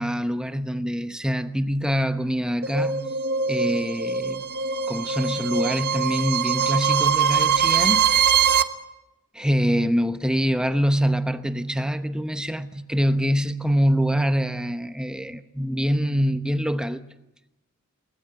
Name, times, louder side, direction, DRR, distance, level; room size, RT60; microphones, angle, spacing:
voice 1, 0.0-3.0 3.5-4.5 4.9-8.0 9.3-17.0, equal, 5° right, 0.8 m, -24 dB
sound 1, 2.6-8.6, right 7 dB, 45° right, 1.2 m, -22 dB
23.0 x 19.5 x 9.4 m
head